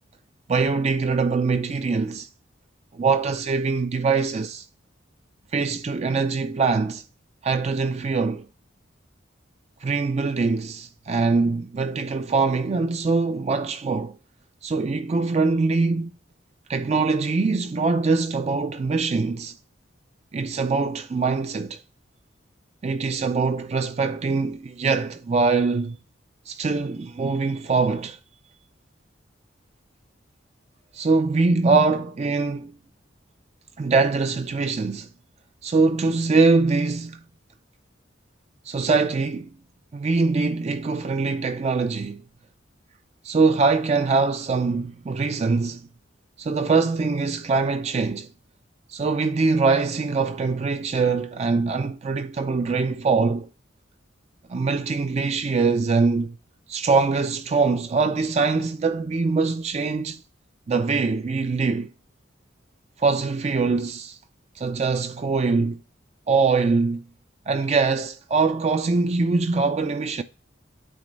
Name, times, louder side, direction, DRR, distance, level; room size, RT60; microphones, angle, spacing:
voice 1, 0.5-2.3 2.9-4.6 5.5-7.0 7.4-8.5 9.8-14.1 14.6-16.1 16.7-19.5 20.3-21.8 22.8-26.0 26.5-28.2 30.9-32.7 33.8-35.1 35.6-37.2 38.7-39.5 39.9-42.2 43.2-45.9 46.4-48.3 48.9-53.5 54.5-56.4 56.7-60.2 60.7-61.9 63.0-64.2 64.6-65.8 66.3-67.0 67.5-70.2, right 4 dB, 35° right, 0.4 m, -23 dB
8.5 x 3.0 x 5.1 m
head